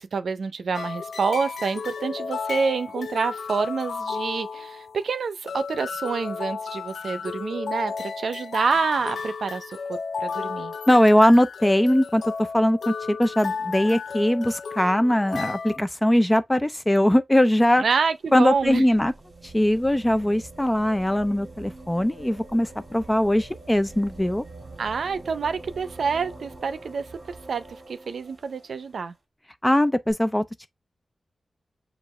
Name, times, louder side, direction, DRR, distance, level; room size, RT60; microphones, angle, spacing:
voice 1, 0.0-10.7 17.8-18.8 24.8-27.1 27.5-29.1, right 5 dB, 80° right, 0.5 m, -27 dB
sound 1, 0.7-15.8, left 5 dB, 85° left, 0.3 m, -33 dB
voice 2, 10.9-12.2 12.5-17.8 18.3-19.1 19.5-24.4 29.6-30.7, left 1 dB, 10° left, 0.4 m, -20 dB
sound 2, 17.9-28.9 30.1-30.2, right 2 dB, 30° right, 1.8 m, -44 dB
6.8 x 2.5 x 3.1 m
wide cardioid pair, 135°, 0 cm